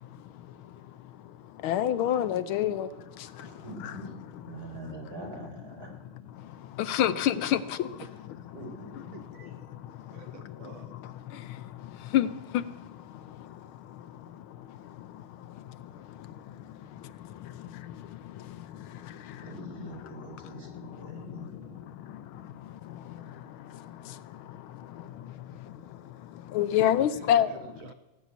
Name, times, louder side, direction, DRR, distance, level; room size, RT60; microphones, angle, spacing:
voice 1, 0.0-4.0 4.8-5.0 6.3-8.0 9.7-11.0 11.3-19.5 20.1-27.5, left 11 dB, 75° left, 1.4 m, -32 dB
voice 2, 3.4-4.0 4.4-5.9 8.5-9.1 19.4-21.8, right 2 dB, 45° right, 4.8 m, -43 dB
voice 3, 9.1-9.7 10.1-11.0 26.9-27.9, right 8 dB, 70° right, 1.6 m, -49 dB
17.5 x 7.5 x 9.3 m
omnidirectional pair, 2.4 m